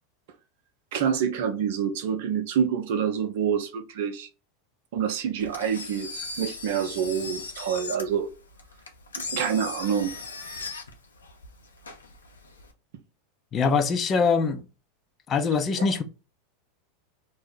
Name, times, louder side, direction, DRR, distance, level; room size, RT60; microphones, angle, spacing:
voice 1, 0.9-4.3 4.9-8.3 9.2-10.1, right 7 dB, 60° right, 0.6 m, -27 dB
Engine, 5.4-12.7, left 3 dB, 85° left, 0.6 m, -38 dB
voice 2, 13.5-14.6 15.3-16.0, left 5 dB, 30° left, 0.5 m, -23 dB
2.6 x 2.0 x 3.9 m
figure-of-eight pair, 85°, 0 cm